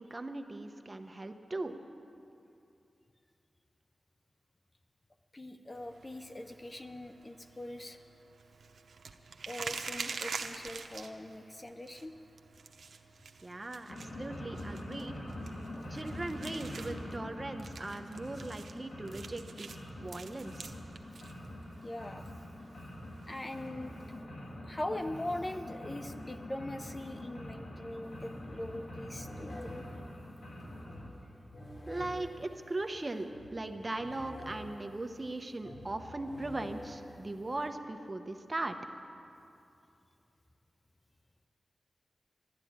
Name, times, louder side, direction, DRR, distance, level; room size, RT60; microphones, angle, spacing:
voice 1, 0.0-1.8 13.4-15.1 15.9-20.7 31.9-38.8, right 2 dB, 25° right, 7 dB, 0.8 m, -39 dB
voice 2, 5.3-8.0 9.5-12.1 21.8-22.3 23.3-24.0 24.6-29.9, left 1 dB, 20° left, 7 dB, 0.5 m, -41 dB
sound 1, 5.7-24.2, right 4 dB, 80° right, 0.8 m, -47 dB
sound 2, 13.9-31.1, left 1 dB, 75° left, 3.0 m, -45 dB
sound 3, 28.0-28.2 28.4-37.7, left 1 dB, 45° left, 3.4 m, -49 dB
12.0 x 12.0 x 9.4 m, 2.6 s
wide cardioid pair, 130°, 0 cm